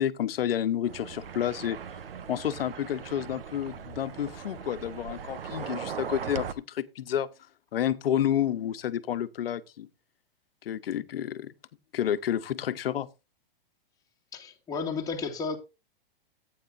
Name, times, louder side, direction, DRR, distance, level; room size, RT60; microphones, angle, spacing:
voice 1, 0.0-1.8 2.3-7.3 7.7-9.9 10.6-11.5 11.9-13.1, left 10 dB, 80° left, 1.1 m, -30 dB
sound 1, 0.9-6.5, right 7 dB, 80° right, 1.2 m, -39 dB
voice 2, 14.3-15.6, left 5 dB, 10° left, 2.2 m, -32 dB
15.5 x 9.2 x 2.7 m
hypercardioid pair, 125°, 29 cm